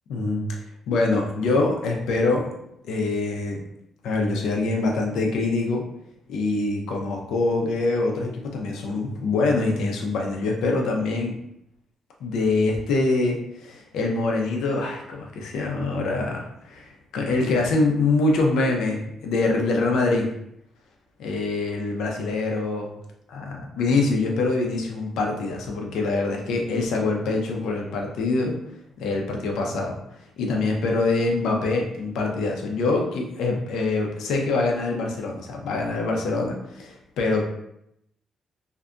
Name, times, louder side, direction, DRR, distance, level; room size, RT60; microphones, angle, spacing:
voice 1, 0.1-0.5 0.9-2.5 2.8-3.6 4.0-5.8 6.3-11.4 12.2-20.3 21.2-22.9 23.3-28.6 29.0-30.0 30.4-37.5, left 3 dB, 80° left, 1 dB, 0.5 m, -24 dB
2.6 x 2.2 x 2.4 m, 0.78 s
cardioid pair, 155°, 0 cm